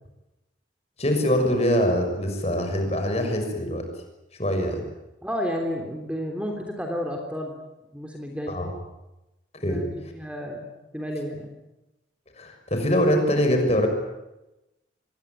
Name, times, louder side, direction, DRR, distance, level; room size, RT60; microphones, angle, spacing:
voice 1, 1.0-3.9 4.4-4.8 8.5-8.7 9.5-9.8 12.4-13.9, equal, 35° left, 5 dB, 6.3 m, -23 dB
voice 2, 5.2-7.5 7.9-8.6 9.6-10.6 10.9-11.5, equal, 5° right, 2 dB, 3.3 m, -31 dB
26.0 x 21.5 x 9.4 m, 0.97 s
head